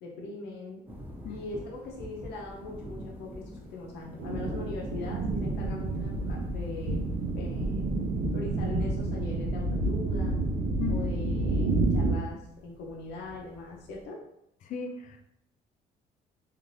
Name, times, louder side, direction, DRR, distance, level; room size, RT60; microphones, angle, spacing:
voice 1, 0.0-0.8 1.3-7.1 7.3-7.9 8.3-10.4 10.9-14.2, left 2 dB, 85° left, -1 dB, 0.7 m, -41 dB
sound 1, 0.9-14.1, equal, 10° right, 0.5 m, -46 dB
sound 2, 4.2-12.1, right 2 dB, 75° right, 0.6 m, -29 dB
voice 2, 14.6-15.2, left 6 dB, 50° left, 6 dB, 0.4 m, -36 dB
3.2 x 2.5 x 2.5 m, 0.78 s
cardioid pair, 110°, 17 cm